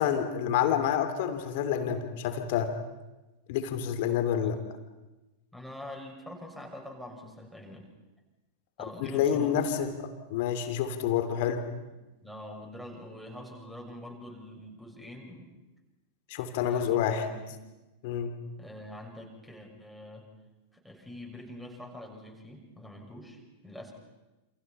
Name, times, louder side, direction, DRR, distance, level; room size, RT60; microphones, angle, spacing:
voice 1, 0.0-2.7 3.5-4.6 9.0-11.6 16.3-17.3 18.0-18.3, left 9 dB, 50° left, 8 dB, 3.1 m, -28 dB
voice 2, 5.5-7.9 8.8-9.7 11.9-15.5 16.6-17.6 18.6-20.3 20.7-23.9, left 1 dB, ahead, 1 dB, 6.7 m, -45 dB
28.5 x 28.5 x 5.8 m, 1.1 s
figure-of-eight pair, 90°, 0 cm